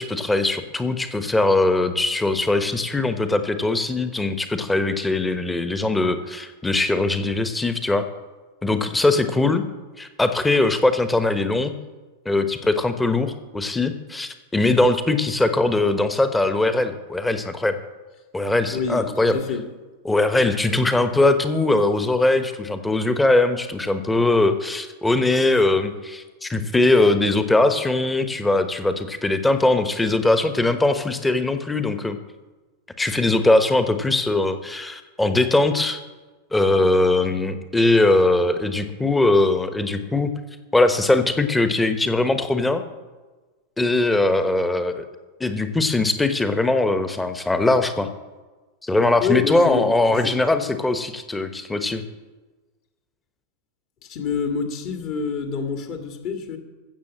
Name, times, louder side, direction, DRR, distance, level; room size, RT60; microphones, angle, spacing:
voice 1, 0.0-8.0 8.6-9.6 10.0-11.8 12.2-17.8 18.3-19.4 20.0-32.2 33.0-36.0 36.5-40.3 40.7-42.8 43.8-45.0 45.4-48.1 48.8-52.0, left 2 dB, 10° left, 9 dB, 1.1 m, -21 dB
voice 2, 18.7-19.6 20.7-20.9 49.2-50.5 54.0-56.6, left 5 dB, 40° left, 5 dB, 1.9 m, -27 dB
15.0 x 7.0 x 7.4 m, 1.3 s
figure-of-eight pair, 90°, 0 cm